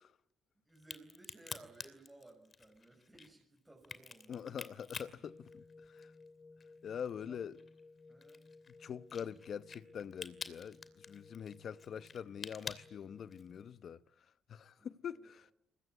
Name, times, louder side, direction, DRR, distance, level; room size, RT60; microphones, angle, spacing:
voice 1, 0.7-4.7 5.1-5.2 7.3-7.4 8.1-8.4 14.8-15.3, right 2 dB, 10° right, 6.1 m, -59 dB
Crack, 0.8-6.3 6.6-13.6, left 5 dB, 40° left, 2.7 m, -48 dB
voice 2, 4.3-5.6 5.9-6.1 6.8-7.6 8.8-10.8 11.1-14.0 14.5-15.5, left 8 dB, 60° left, 1.0 m, -44 dB
sound 1, 5.2-13.8, left 3 dB, 20° left, 2.6 m, -59 dB
22.5 x 21.0 x 9.5 m
cardioid pair, 90°, 0 cm